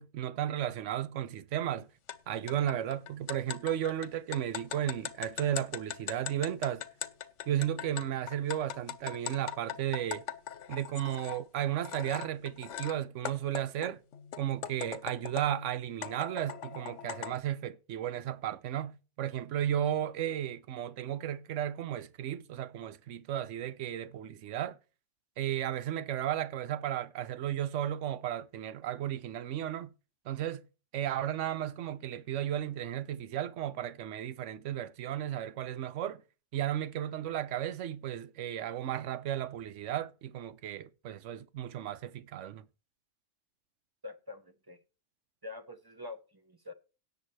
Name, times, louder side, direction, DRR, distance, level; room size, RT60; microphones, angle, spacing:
voice 1, 0.0-1.9 2.3-6.8 7.5-10.2 10.7-14.0 14.4-24.8 25.4-29.9 30.3-30.7 30.9-36.2 36.5-42.6, right 11 dB, 85° right, 1.0 m, -34 dB
sound 1, 2.1-2.2 2.5-11.4 11.8-12.9 13.2-15.6 16.0-17.4, left 9 dB, 75° left, 1.1 m, -40 dB
voice 2, 44.0-44.8 45.4-46.7, left 3 dB, 25° right, 0.7 m, -45 dB
17.5 x 6.9 x 3.2 m
omnidirectional pair, 1.2 m